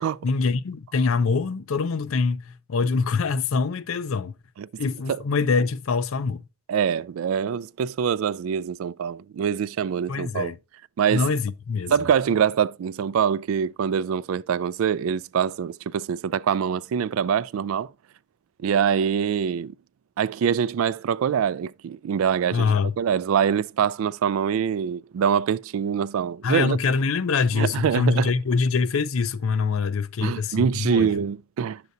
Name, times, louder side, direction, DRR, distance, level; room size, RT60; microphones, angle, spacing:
voice 1, 0.2-4.4 4.8-6.5 10.1-10.6 11.1-11.9 22.5-22.9 26.4-31.1, left 4 dB, 85° left, 0.5 m, -24 dB
voice 2, 6.7-10.5 11.0-11.3 11.9-17.9 18.6-19.7 20.2-22.7 23.0-26.8 27.5-28.3 30.2-31.8, right 7 dB, 85° right, 0.3 m, -24 dB
9.2 x 6.8 x 2.6 m
head